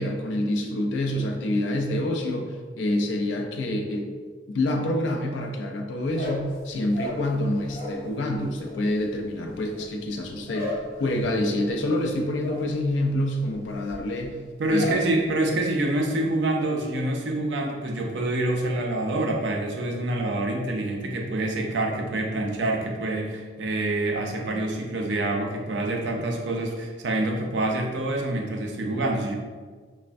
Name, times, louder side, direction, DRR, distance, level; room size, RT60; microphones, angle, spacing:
voice 1, 0.0-4.1 4.5-14.4 14.7-15.1, left 1 dB, 75° left, 3 dB, 0.4 m, -27 dB
sound 1, 6.0-8.1 8.3-15.1 15.4-15.9 16.2-16.7, left 1 dB, 10° left, 1.4 m, -37 dB
voice 2, 14.6-29.3, right 2 dB, 70° right, 1 dB, 0.4 m, -26 dB
3.2 x 2.1 x 2.5 m, 1.5 s
head